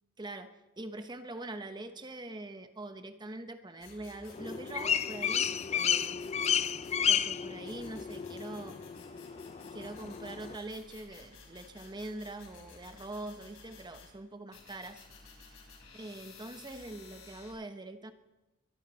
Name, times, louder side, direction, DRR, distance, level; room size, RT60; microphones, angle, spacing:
voice 1, 0.2-6.2 7.1-8.8 9.7-15.1 15.4-15.6 15.9-18.1, right 2 dB, 20° right, 8 dB, 1.0 m, -43 dB
sound 1, 3.8-7.2 7.7-14.1 14.5-17.5, left 4 dB, 70° left, 5.1 m, -54 dB
sound 2, 4.3-10.6, left 8 dB, 30° left, 0.4 m, -32 dB
23.0 x 12.0 x 4.1 m, 1.0 s
head